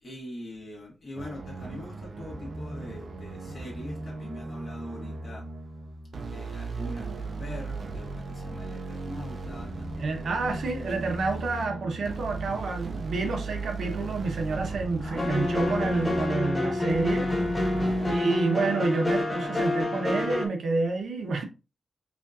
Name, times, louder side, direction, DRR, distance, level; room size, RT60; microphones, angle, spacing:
voice 1, 0.0-5.5 6.3-11.1 15.0-15.4 17.8-18.8, left 1 dB, 40° left, 1.6 m, -43 dB
sound 1, 1.2-18.2, right 3 dB, 50° right, 0.5 m, -37 dB
voice 2, 10.0-17.3 18.1-21.4, right 3 dB, 85° right, 0.8 m, -29 dB
sound 2, 15.2-20.5, left 1 dB, 10° left, 0.8 m, -27 dB
4.9 x 2.5 x 2.4 m
wide cardioid pair, 160°, 0 cm